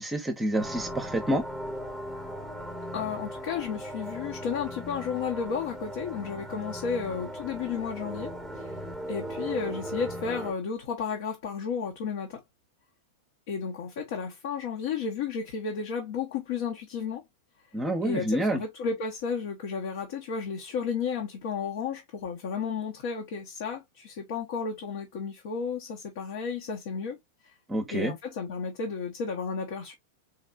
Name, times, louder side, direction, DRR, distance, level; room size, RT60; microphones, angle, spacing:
voice 1, 0.0-1.4 17.7-18.6 27.7-28.1, right 1 dB, 15° right, 0.8 m, -28 dB
sound 1, 0.5-10.5, equal, 5° left, 1.1 m, -38 dB
voice 2, 2.9-8.7 9.1-12.4 13.5-17.2 18.0-27.2 27.9-29.9, left 6 dB, 55° left, 1.0 m, -33 dB
4.3 x 3.2 x 2.4 m
figure-of-eight pair, 95°, 0 cm